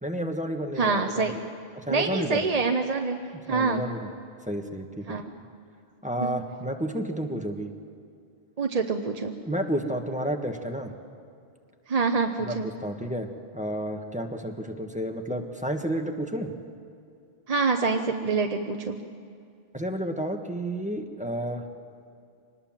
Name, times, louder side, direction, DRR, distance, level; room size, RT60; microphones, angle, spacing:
voice 1, 0.0-1.4 1.8-2.5 3.5-4.1 4.5-5.0 6.0-7.7 9.4-10.9 12.4-12.6 12.8-13.3 13.5-16.5 19.7-21.6, right 1 dB, 5° right, 4 dB, 1.5 m, -31 dB
voice 2, 0.8-1.3 1.9-3.2 3.5-3.9 5.1-5.2 6.2-6.3 8.6-9.3 11.9-12.7 17.5-19.0, right 4 dB, 40° right, 4 dB, 0.9 m, -26 dB
25.0 x 20.0 x 7.5 m, 2.4 s
omnidirectional pair, 1.1 m